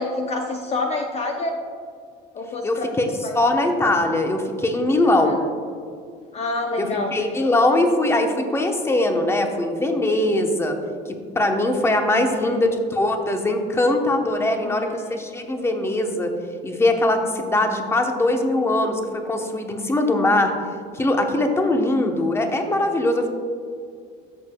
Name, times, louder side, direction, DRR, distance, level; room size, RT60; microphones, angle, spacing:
voice 1, 0.0-1.6 2.3-2.8 3.2-3.3 5.0-5.4 6.3-7.1 12.0-12.7 14.4-15.2, left 2 dB, 35° left, 3 dB, 0.7 m, -28 dB
voice 2, 2.6-3.1 3.3-5.4 6.8-10.8 11.1-16.3 16.6-19.0 19.2-20.5 20.9-23.3, left 1 dB, 15° left, 4 dB, 0.9 m, -21 dB
13.5 x 6.6 x 2.3 m, 2.3 s
cardioid pair, 110°, 18 cm